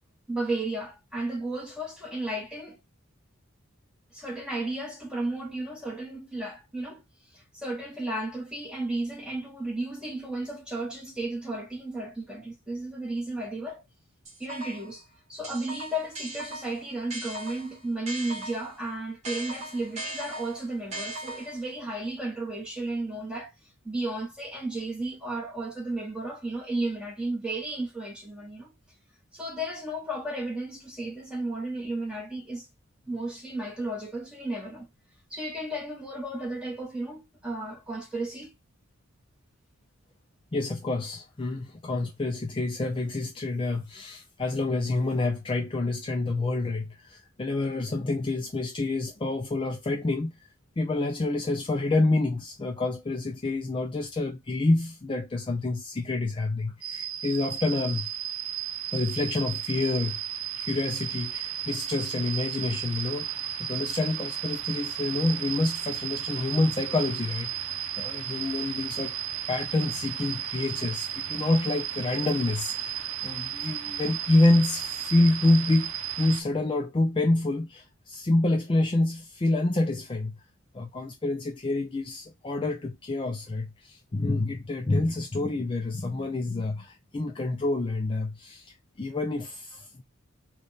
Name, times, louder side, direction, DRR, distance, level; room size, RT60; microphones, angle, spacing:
voice 1, 0.3-2.8 4.1-7.0 7.3-13.8 14.4-15.0 15.3-23.5 23.8-28.7 29.3-32.7 33.0-34.9 35.3-38.5, right 2 dB, 5° right, 1.2 m, -33 dB
sound 1, 14.2-15.0 15.4-18.8 19.2-21.7, right 1 dB, 35° right, 1.4 m, -39 dB
voice 2, 40.5-50.5 50.8-58.1 58.9-60.2 60.6-69.1 69.5-80.4 80.7-90.0, left 2 dB, 25° left, 0.4 m, -27 dB
sound 2, 56.8-76.4, right 10 dB, 80° right, 0.6 m, -34 dB
3.4 x 2.3 x 3.9 m
head